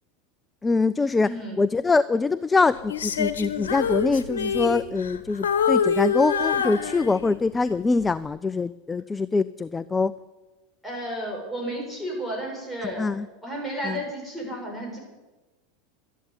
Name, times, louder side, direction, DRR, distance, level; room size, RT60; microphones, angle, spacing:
voice 1, 0.6-1.3 1.6-10.1 13.0-13.3 13.8-14.0, left 3 dB, 15° left, 17 dB, 0.4 m, -24 dB
voice 2, 1.2-1.6 10.8-13.1 13.4-15.0, right 1 dB, ahead, -2 dB, 7.1 m, -32 dB
Female singing, 2.9-5.2 5.4-7.5 8.0-8.2, left 7 dB, 80° left, 1.2 m, -25 dB
12.5 x 10.0 x 9.6 m, 1.2 s
hypercardioid pair, 90°, 0 cm